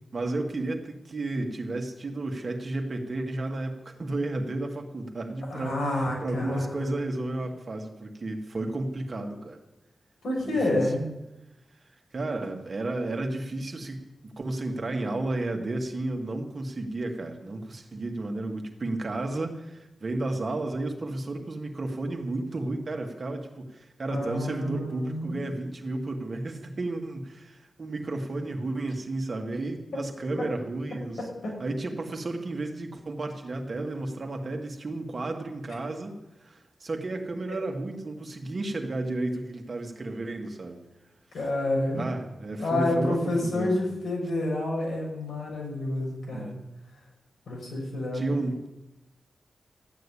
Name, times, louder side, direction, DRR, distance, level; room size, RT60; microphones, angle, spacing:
voice 1, 0.1-5.8 6.2-9.6 10.4-10.9 12.1-31.2 31.6-40.8 41.9-43.8 46.3-46.6 48.1-48.7, right 2 dB, 35° right, 3 dB, 1.9 m, -32 dB
voice 2, 5.5-6.9 10.2-11.1 24.1-25.4 31.4-31.5 41.3-42.1 42.6-46.5 47.5-48.2, left 1 dB, 85° left, -2 dB, 6.4 m, -29 dB
14.0 x 9.2 x 9.9 m, 0.97 s
wide cardioid pair, 155°, 0 cm